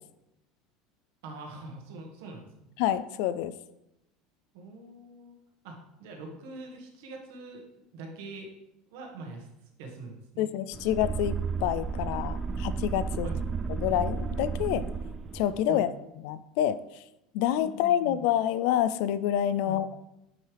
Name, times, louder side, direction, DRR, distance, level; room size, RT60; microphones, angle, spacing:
voice 1, 1.2-2.7 4.5-5.4 5.6-7.6 7.9-8.5 8.9-9.5 9.8-10.5 13.2-13.4 15.7-15.8 17.6-18.2 19.6-19.8, right 3 dB, 70° right, 2 dB, 1.6 m, -43 dB
voice 2, 2.8-3.5 10.4-13.3 13.7-14.9 15.3-15.9 16.2-16.8 17.3-19.9, left 11 dB, 55° left, 15 dB, 0.4 m, -27 dB
sound 1, 10.7-15.6, right 5 dB, 20° right, 0.3 m, -32 dB
9.3 x 5.5 x 3.4 m, 0.87 s
cardioid pair, 180°, 0 cm